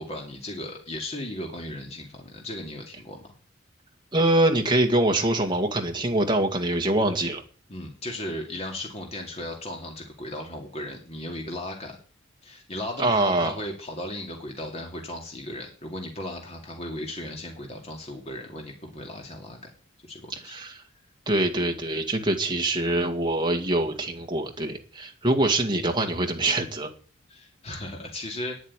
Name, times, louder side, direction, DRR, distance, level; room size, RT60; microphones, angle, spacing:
voice 1, 0.0-3.3 7.7-12.0 12.4-19.6 20.1-20.5 27.3-28.5, left 1 dB, 30° left, 1 dB, 2.6 m, -36 dB
voice 2, 4.1-7.4 13.0-13.6 20.3-20.8 21.3-26.9, right 1 dB, 25° right, 4 dB, 2.0 m, -24 dB
10.0 x 8.2 x 9.9 m, 0.42 s
head